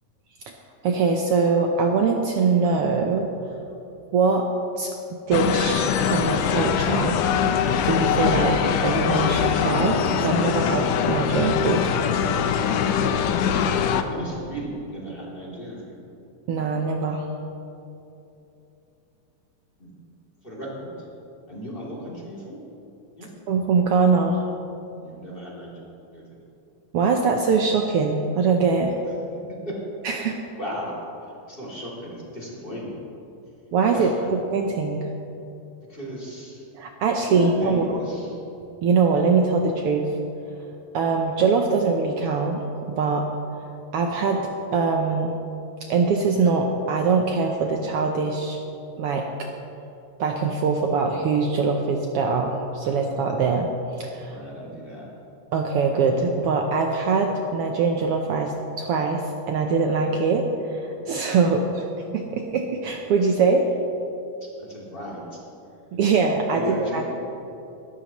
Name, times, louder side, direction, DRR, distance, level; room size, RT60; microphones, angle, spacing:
voice 1, 0.8-3.3 4.1-4.5 4.8-7.2 7.8-8.6 8.8-11.9 16.5-17.2 23.5-24.4 26.9-29.0 30.0-30.4 33.7-34.1 34.5-35.0 36.8-37.8 38.8-40.1 40.9-43.3 43.9-44.4 44.7-45.3 45.9-48.6 49.0-49.5 50.2-53.7 54.0-54.4 55.5-61.7 62.1-63.6 65.9-67.0, right 4 dB, 90° right, 2 dB, 1.2 m, -22 dB
sound 1, 5.3-14.0, left 7 dB, 85° left, 2.3 m, -22 dB
voice 2, 14.1-15.9 19.8-19.9 20.4-21.1 21.5-22.5 23.2-23.3 25.0-25.8 26.1-26.4 29.3-29.7 30.1-30.3 30.6-33.0 33.9-34.3 35.9-36.7 37.2-38.4 44.3-44.4 52.8-53.0 54.2-55.1 61.3-61.6 64.4-65.4 66.5-67.0, equal, 15° left, -5 dB, 2.8 m, -36 dB
21.5 x 12.5 x 3.1 m, 2.8 s
omnidirectional pair, 3.6 m